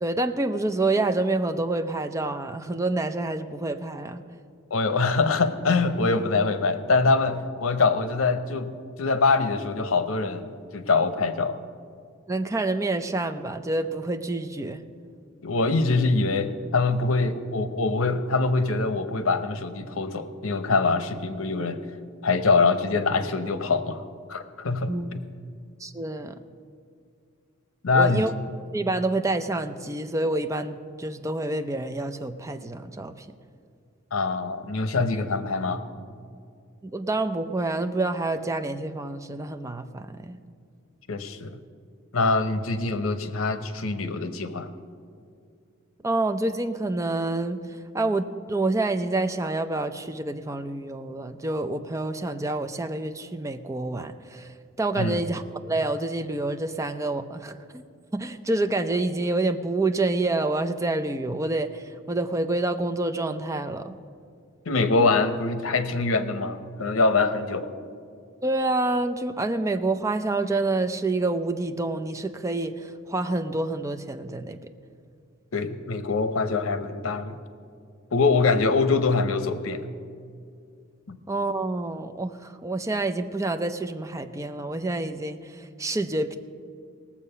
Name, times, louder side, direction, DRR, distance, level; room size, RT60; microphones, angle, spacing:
voice 1, 0.0-4.2 12.3-14.8 24.9-25.1 25.8-26.3 27.9-28.3 28.7-33.3 36.8-40.4 46.0-47.7 47.9-57.8 58.1-63.9 68.4-74.6 81.3-86.3, right 2 dB, 15° right, 8 dB, 0.5 m, -27 dB
voice 2, 4.7-10.5 10.7-11.6 15.4-21.8 22.2-24.0 24.3-25.2 27.8-28.2 34.1-35.8 41.1-41.6 42.1-44.7 54.9-55.2 64.7-67.7 75.5-77.4 78.1-79.9 81.1-81.2, left 3 dB, 80° left, 10 dB, 0.8 m, -24 dB
18.0 x 7.3 x 5.5 m, 2.3 s
head